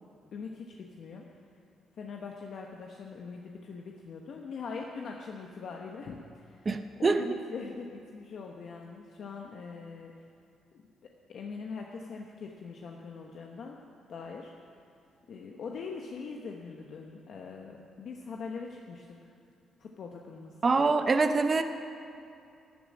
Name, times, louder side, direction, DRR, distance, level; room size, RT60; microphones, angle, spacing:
voice 1, 0.3-1.2 2.0-6.7 7.0-10.1 10.7-10.8 11.3-13.8 14.1-14.5 15.3-19.3 19.8-20.5, left 5 dB, 60° left, 1 dB, 1.1 m, -42 dB
voice 2, 6.7-7.2 20.6-21.6, right 4 dB, 35° right, 8 dB, 0.7 m, -25 dB
12.5 x 9.3 x 7.7 m, 2.6 s
cardioid pair, 90°, 0 cm